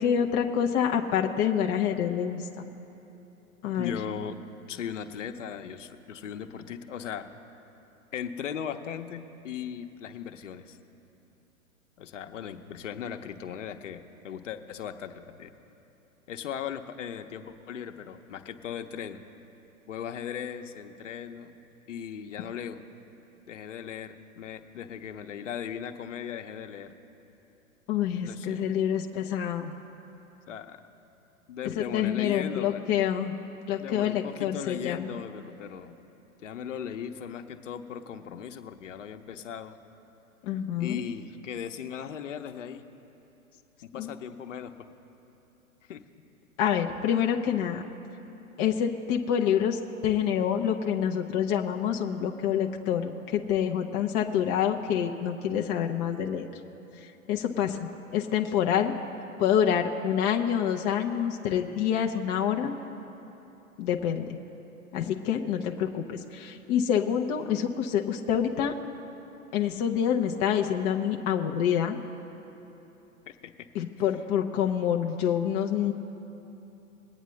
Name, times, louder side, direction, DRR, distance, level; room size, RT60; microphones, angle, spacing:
voice 1, 0.0-2.7 3.6-3.9 27.9-29.7 31.6-33.3 33.7-35.2 40.4-41.0 43.9-44.1 46.6-47.8 48.6-56.5 57.0-59.0 59.4-62.8 63.8-64.4 64.9-68.7 69.5-72.0 73.7-75.9, left 9 dB, 20° left, 2 dB, 0.5 m, -27 dB
voice 2, 3.8-4.4 4.7-7.3 8.1-10.8 12.0-15.5 16.3-19.2 19.9-21.5 21.9-22.8 23.5-26.9 28.2-28.7 30.5-30.8 31.5-32.9 33.8-36.0 36.4-39.8 40.8-42.8 43.8-44.9 45.9-46.0 73.3-73.7, left 8 dB, 60° left, 7 dB, 1.0 m, -38 dB
22.0 x 9.0 x 3.2 m, 3.0 s
figure-of-eight pair, 105°, 42 cm